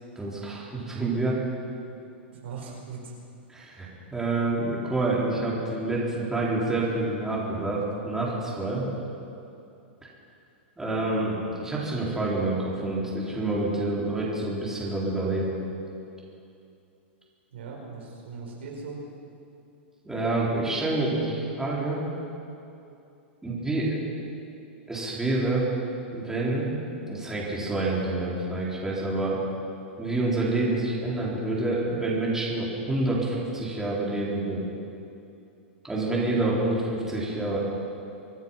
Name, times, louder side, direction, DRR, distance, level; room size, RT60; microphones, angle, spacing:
voice 1, 0.2-1.4 3.5-8.9 10.8-15.6 20.0-22.0 23.4-24.0 24.9-25.7 26.1-26.7 27.1-29.4 30.0-34.7 35.8-37.6, right 2 dB, 5° right, -6 dB, 4.2 m, -27 dB
voice 2, 2.4-3.1 17.5-19.0, right 5 dB, 75° right, -2 dB, 4.9 m, -39 dB
25.0 x 9.5 x 5.9 m, 2.7 s
hypercardioid pair, 115°, 6 cm